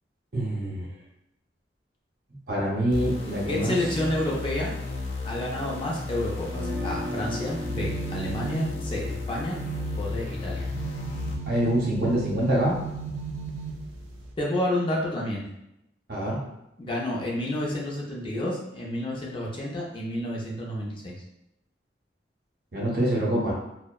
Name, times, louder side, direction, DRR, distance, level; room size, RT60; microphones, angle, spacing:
voice 1, 0.3-0.9 2.5-3.7 11.5-12.8 16.1-16.4 22.7-23.5, right 1 dB, 55° right, -4 dB, 0.7 m, -25 dB
sound 1, 2.9-11.4, left 3 dB, 90° left, 0.5 m, -34 dB
voice 2, 3.5-4.7 5.2-9.6 10.0-10.7 14.4-15.4 16.8-21.2, left 1 dB, 30° left, -3 dB, 0.4 m, -30 dB
sound 2, 6.5-12.5, left 1 dB, 25° right, 0.7 m, -39 dB
sound 3, 7.4-14.3, right 6 dB, 85° right, 0.4 m, -36 dB
2.6 x 2.0 x 2.2 m, 0.85 s
head